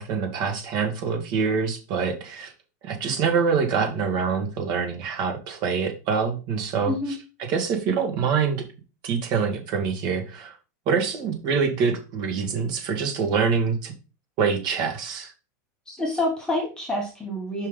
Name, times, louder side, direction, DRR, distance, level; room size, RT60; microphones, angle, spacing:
voice 1, 0.0-2.5 2.8-8.6 9.0-10.6 10.9-13.9 14.4-15.3, right 5 dB, 45° right, 4 dB, 1.8 m, -25 dB
voice 2, 15.9-17.7, left 1 dB, 5° left, -2 dB, 1.3 m, -27 dB
5.4 x 3.8 x 5.3 m, 0.32 s
supercardioid pair, 140°, 10 cm